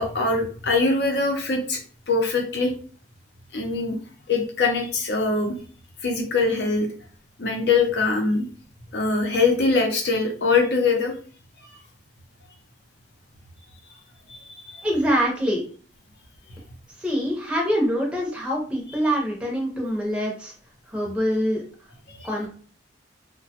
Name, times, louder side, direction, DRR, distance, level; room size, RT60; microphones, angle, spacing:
voice 1, 0.0-1.8 2.1-2.7 3.5-4.0 4.3-5.5 6.0-6.9 7.4-8.4 8.9-11.1 14.3-14.9 22.2-22.3, left 3 dB, 60° left, 3 dB, 0.7 m, -22 dB
voice 2, 14.8-15.6 17.0-20.5 20.9-21.6 22.2-22.5, equal, 5° right, -2 dB, 0.7 m, -24 dB
2.9 x 2.2 x 2.8 m, 0.42 s
head